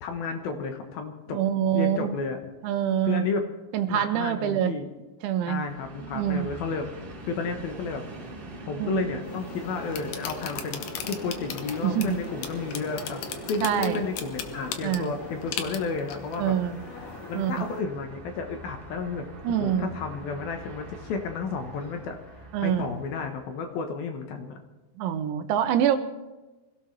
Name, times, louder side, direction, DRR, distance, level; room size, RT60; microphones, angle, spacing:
voice 1, 0.0-2.4 3.0-3.4 3.9-4.9 5.5-6.9 7.3-8.0 8.7-13.2 13.5-16.6 17.3-24.6, left 5 dB, 70° left, 5 dB, 2.6 m, -32 dB
voice 2, 1.3-2.1 2.6-3.3 3.7-4.7 5.2-5.6 6.1-6.5 8.8-9.0 11.8-12.2 13.6-14.0 14.8-15.1 16.4-16.8 17.3-17.6 19.4-19.9 22.5-22.9 25.0-26.0, right 10 dB, 85° right, 9 dB, 3.3 m, -25 dB
Train, 5.5-23.6, right 2 dB, 40° right, 2.4 m, -42 dB
sound 1, 9.2-17.8, left 8 dB, 85° left, 1.7 m, -39 dB
24.5 x 16.5 x 3.3 m, 1.1 s
omnidirectional pair, 5.2 m